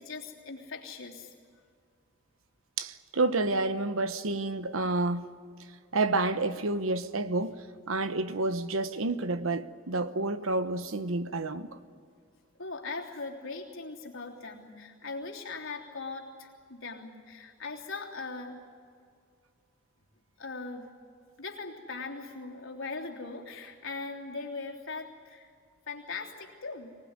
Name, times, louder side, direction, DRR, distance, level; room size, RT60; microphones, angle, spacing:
voice 1, 0.0-1.3 12.6-18.6 20.4-20.9 21.4-25.5 25.9-27.0, left 3 dB, 80° left, 3.3 m, -40 dB
voice 2, 2.8-5.3 5.9-7.6 7.9-11.7, right 2 dB, 85° right, 1.1 m, -29 dB
24.5 x 19.0 x 9.7 m
head